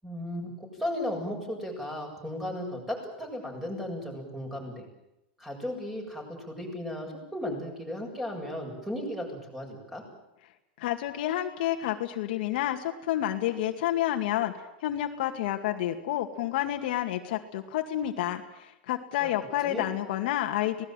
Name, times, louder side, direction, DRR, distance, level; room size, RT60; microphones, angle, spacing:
voice 1, 0.0-4.9 5.4-10.0 19.2-19.3 19.6-19.9, left 1 dB, 5° right, 2 dB, 7.9 m, -35 dB
voice 2, 10.8-14.5 14.8-20.8, left 13 dB, 65° left, 4 dB, 2.3 m, -29 dB
26.0 x 19.0 x 9.1 m, 0.91 s
supercardioid pair, 140°, 5 cm